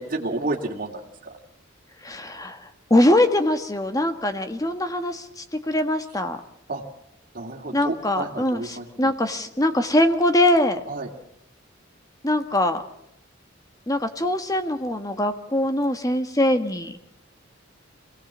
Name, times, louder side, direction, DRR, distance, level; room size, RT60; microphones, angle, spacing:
voice 1, 0.0-1.3 6.7-6.8 7.3-9.1 10.9-11.1, right 2 dB, 45° right, -1 dB, 2.4 m, -31 dB
voice 2, 2.0-6.4 7.7-10.8 12.2-12.8 13.9-17.0, left 1 dB, 20° left, 7 dB, 1.5 m, -22 dB
25.5 x 18.0 x 7.4 m, 0.80 s
head